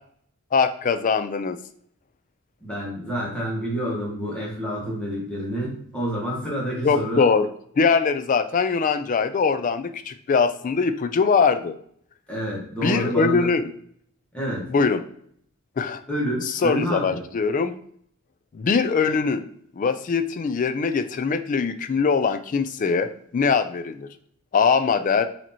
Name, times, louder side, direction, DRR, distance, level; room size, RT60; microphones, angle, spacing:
voice 1, 0.5-1.6 6.8-7.5 7.8-11.8 12.8-13.7 14.7-15.0 15.8-16.0 16.4-17.7 18.5-19.4 19.8-24.1 24.5-25.3, left 5 dB, 35° left, 10 dB, 0.3 m, -22 dB
voice 2, 2.6-7.3 12.3-13.5 14.3-14.7 16.1-17.2, equal, 5° left, -5 dB, 1.4 m, -28 dB
5.9 x 2.9 x 2.8 m, 0.63 s
head